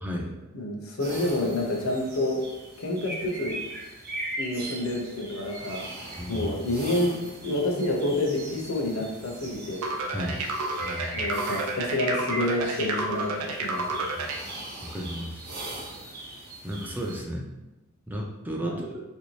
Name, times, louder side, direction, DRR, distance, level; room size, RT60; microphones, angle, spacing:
voice 1, 0.0-0.3 6.2-6.5 10.1-10.4 10.8-11.2 14.1-14.3 14.8-15.5 16.0-16.1 16.6-17.5 18.1-19.0, equal, 10° right, -1 dB, 0.3 m, -34 dB
voice 2, 0.5-2.4 2.8-3.5 4.4-5.8 6.3-7.2 7.4-9.8 11.1-13.9 18.6-18.7, left 1 dB, 70° left, 0 dB, 0.6 m, -28 dB
sound 1, 1.0-17.2, right 1 dB, 45° right, 0.7 m, -39 dB
sound 2, 9.8-14.4, right 3 dB, 85° right, 0.4 m, -30 dB
3.0 x 2.6 x 3.1 m, 1.0 s
head